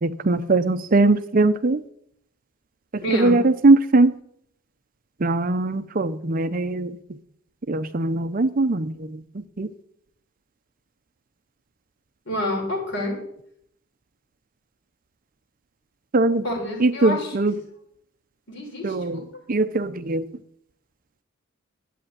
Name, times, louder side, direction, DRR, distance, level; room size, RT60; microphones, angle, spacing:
voice 1, 0.0-1.8 2.9-4.1 5.2-7.2 7.7-9.7 16.1-16.4 16.8-17.5 18.8-19.2 19.5-20.3, right 2 dB, 40° right, 13 dB, 0.6 m, -21 dB
voice 2, 3.0-3.4 12.3-13.1 16.4-17.4 18.5-19.2, left 1 dB, 55° left, -1 dB, 5.9 m, -28 dB
11.0 x 8.8 x 9.0 m, 0.72 s
head